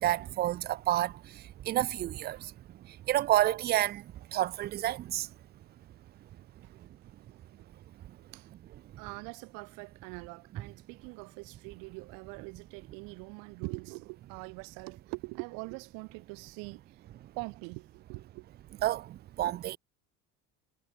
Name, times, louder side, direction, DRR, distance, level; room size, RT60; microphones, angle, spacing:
voice 1, 0.0-5.3 6.7-6.9 8.1-8.2 8.8-9.0 17.2-17.3 18.8-19.8, right 14 dB, 30° right, 0.4 m, -30 dB
voice 2, 7.3-7.7 8.2-8.5 9.0-16.8 17.4-18.4, right 33 dB, 80° right, 0.8 m, -43 dB
cardioid pair, 130°, 33 cm